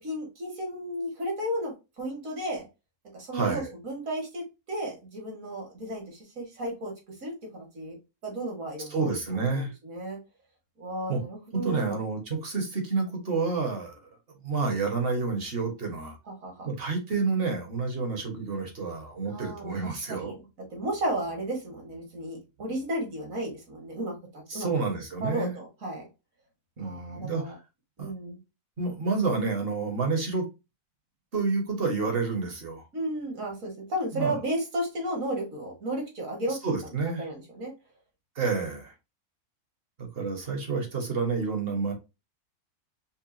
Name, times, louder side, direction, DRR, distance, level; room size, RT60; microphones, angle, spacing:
voice 1, 0.0-2.6 3.1-6.9 7.2-8.0 8.2-9.1 9.5-10.2 10.8-12.0 16.4-16.7 19.2-20.4 20.7-24.7 25.2-26.1 26.8-27.6 28.0-28.4 32.9-36.6 37.1-37.7, right 1 dB, 60° right, 1.9 m, -33 dB
voice 2, 3.3-3.7 8.9-9.7 11.1-11.2 11.5-14.0 14.4-16.2 16.6-20.4 24.5-25.5 26.8-27.5 28.0-28.1 28.8-30.5 31.3-32.8 34.1-34.4 36.5-37.3 38.4-38.9 40.0-41.9, right 4 dB, 45° right, 1.2 m, -29 dB
5.5 x 2.2 x 2.6 m
omnidirectional pair, 1.6 m